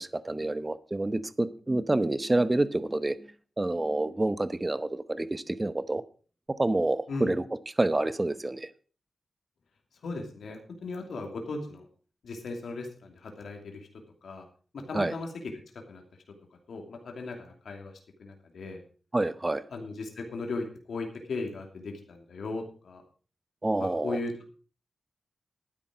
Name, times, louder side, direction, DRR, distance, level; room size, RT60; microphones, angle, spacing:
voice 1, 0.0-3.3 3.6-6.0 6.6-7.4 7.8-8.7 14.9-15.1 19.1-19.6 23.6-24.2, right 2 dB, 20° right, 0.9 m, -28 dB
voice 2, 10.0-11.9 12.2-13.9 14.2-14.5 14.7-15.3 15.9-16.0 16.7-17.9 18.2-18.8 19.7-23.0 23.8-24.3, left 3 dB, 80° left, 2.7 m, -37 dB
12.5 x 10.0 x 5.0 m
wide cardioid pair, 100°, 0 cm